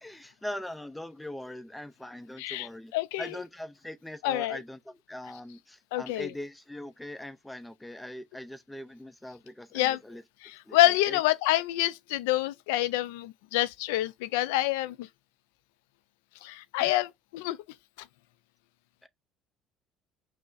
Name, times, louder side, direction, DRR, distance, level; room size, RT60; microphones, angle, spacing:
voice 1, 0.0-2.9 3.2-10.2 10.7-11.2 16.8-16.9 19.0-19.1, left 1 dB, 10° left, 0.5 m, -41 dB
voice 2, 2.4-3.4 4.2-4.6 5.9-6.3 9.7-10.0 10.4-15.1 16.4-17.6, left 16 dB, 85° left, 0.3 m, -27 dB
5.3 x 2.0 x 2.5 m
supercardioid pair, 75°, 0 cm